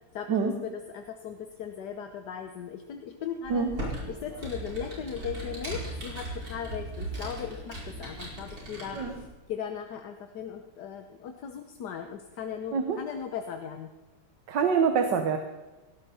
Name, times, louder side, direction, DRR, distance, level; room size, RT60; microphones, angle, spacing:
voice 1, 0.1-3.7 4.1-9.0 9.5-13.9, left 8 dB, 70° left, 6 dB, 1.5 m, -38 dB
Computer keyboard, 3.4-9.2, right 1 dB, 55° right, 5.5 m, -38 dB
voice 2, 14.5-15.4, right 6 dB, 80° right, 6 dB, 1.7 m, -25 dB
18.0 x 16.5 x 4.3 m, 1.2 s
omnidirectional pair, 1.9 m